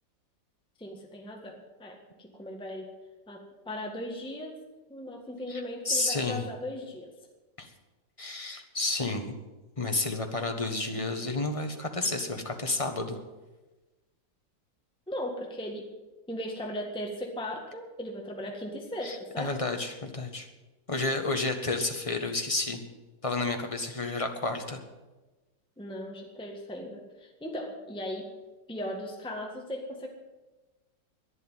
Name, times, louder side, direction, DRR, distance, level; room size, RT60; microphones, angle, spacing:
voice 1, 0.8-2.9 3.3-4.6 4.9-7.1 15.1-15.9 16.3-19.5 25.8-28.3 28.7-30.1, left 1 dB, 5° left, 1 dB, 1.5 m, -38 dB
voice 2, 5.5-6.4 7.6-7.7 8.2-9.3 9.8-13.2 19.0-20.5 20.9-22.8 23.2-24.8, left 2 dB, 20° left, 4 dB, 1.3 m, -31 dB
11.5 x 10.5 x 9.2 m, 1.2 s
omnidirectional pair, 2.0 m